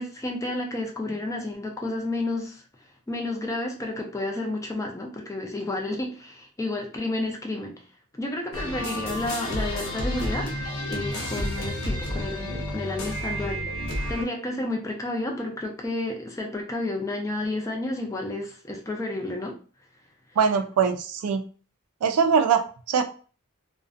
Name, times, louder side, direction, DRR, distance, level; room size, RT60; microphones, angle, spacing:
voice 1, 0.0-2.6 3.1-7.9 8.1-10.5 10.9-13.8 14.1-19.6, left 2 dB, 15° left, 1 dB, 0.4 m, -31 dB
sound 1, 8.5-14.2, left 1 dB, 70° left, 0.6 m, -30 dB
voice 2, 20.4-21.4 22.0-23.0, right 6 dB, 80° right, 7 dB, 0.3 m, -22 dB
2.4 x 2.1 x 2.5 m, 0.39 s
head